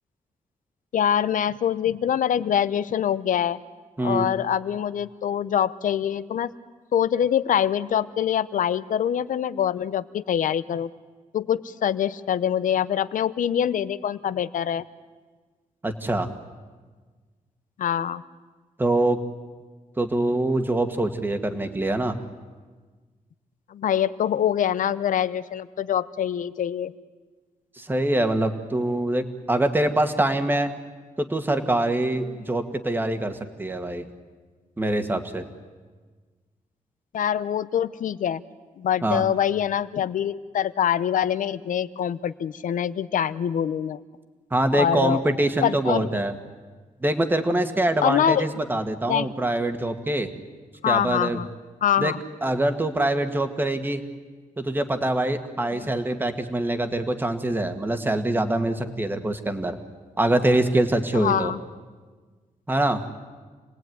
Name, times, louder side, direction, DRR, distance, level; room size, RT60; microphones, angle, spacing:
voice 1, 0.9-3.6 4.0-6.5 6.9-10.9 11.3-14.8 17.8-18.2 23.7-26.9 32.2-32.4 37.1-38.4 38.8-44.0 44.7-45.2 45.6-46.1 48.0-48.5 49.1-49.3 50.8-51.5 51.8-52.2 55.7-56.0 61.1-61.6, left 9 dB, 70° left, 15 dB, 0.8 m, -24 dB
voice 2, 15.8-16.3 18.8-19.2 20.0-22.2 27.8-30.7 31.2-34.0 34.8-35.4 39.0-39.2 44.5-46.3 47.0-50.3 50.9-51.4 52.0-52.1 52.4-54.0 54.6-59.8 60.2-61.5 62.7-63.0, right 1 dB, 15° right, 7 dB, 1.7 m, -24 dB
28.5 x 19.5 x 9.4 m, 1.4 s
wide cardioid pair, 170°, 14 cm